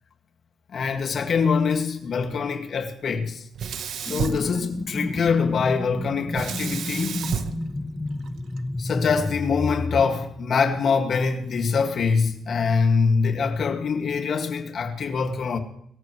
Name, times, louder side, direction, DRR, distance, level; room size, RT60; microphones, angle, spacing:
voice 1, 0.7-3.4 4.0-7.3 8.8-15.6, left 5 dB, 50° left, 2.0 m, -24 dB
Sink (filling or washing), 3.5-5.2 6.3-8.6, right 7 dB, 60° right, 1.0 m, -32 dB
sound 1, 4.1-10.0, left 2 dB, 10° left, 0.6 m, -32 dB
23.0 x 14.0 x 3.2 m
cardioid pair, 140°, 0 cm